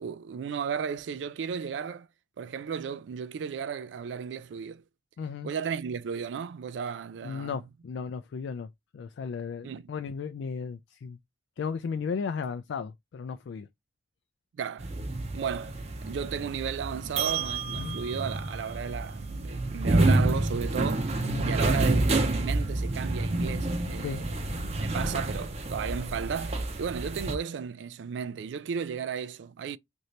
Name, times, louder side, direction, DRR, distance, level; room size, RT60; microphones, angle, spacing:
voice 1, 0.0-2.1 2.4-4.8 5.4-7.6 9.6-9.9 14.6-14.9 15.3-15.8 16.0-21.1 21.4-24.4 24.8-29.8, right 7 dB, 80° right, 0.3 m, -34 dB
voice 2, 5.2-5.5 7.2-11.2 11.6-13.7 17.8-18.0 21.2-21.5 24.0-24.2, left 5 dB, 80° left, 0.3 m, -35 dB
sound 1, 14.8-27.4, right 2 dB, 35° right, 0.6 m, -28 dB
2.8 x 2.7 x 3.1 m
head